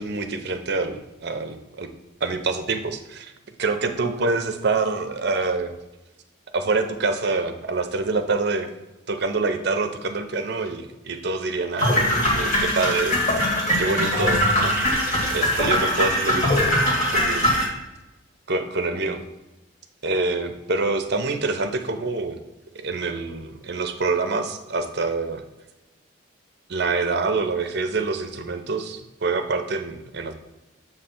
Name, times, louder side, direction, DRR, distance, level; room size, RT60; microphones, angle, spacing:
voice 1, 0.0-1.9 2.2-3.3 3.6-5.7 6.5-8.7 9.1-12.0 12.3-13.5 13.8-14.8 15.3-17.5 18.5-19.2 20.0-22.4 22.7-25.4 26.7-30.3, right 3 dB, 50° right, 7 dB, 0.6 m, -26 dB
sound 1, 11.8-17.6, equal, 35° left, 1.7 m, -21 dB
7.4 x 3.3 x 5.8 m, 1.0 s
head